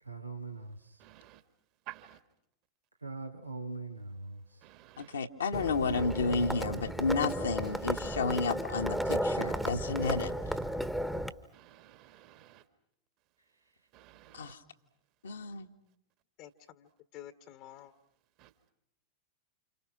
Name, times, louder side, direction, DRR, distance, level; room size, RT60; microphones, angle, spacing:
voice 1, 0.0-1.0 3.0-4.6, right 3 dB, 85° right, 5 dB, 1.3 m, -42 dB
voice 2, 1.0-1.4 1.9-2.2 4.6-5.2 11.5-12.6 13.9-14.6 18.4-18.5, right 14 dB, 40° right, 11 dB, 1.9 m, -52 dB
voice 3, 5.0-10.5 14.3-14.6 15.2-15.7, left 4 dB, 70° left, 4 dB, 1.7 m, -32 dB
Livestock farm animals working animals, 5.5-11.3, right 1 dB, 5° right, 1.3 m, -34 dB
voice 4, 16.4-17.9, left 12 dB, 45° left, 11 dB, 1.4 m, -50 dB
30.0 x 28.0 x 6.2 m, 0.77 s
figure-of-eight pair, 90°, 0 cm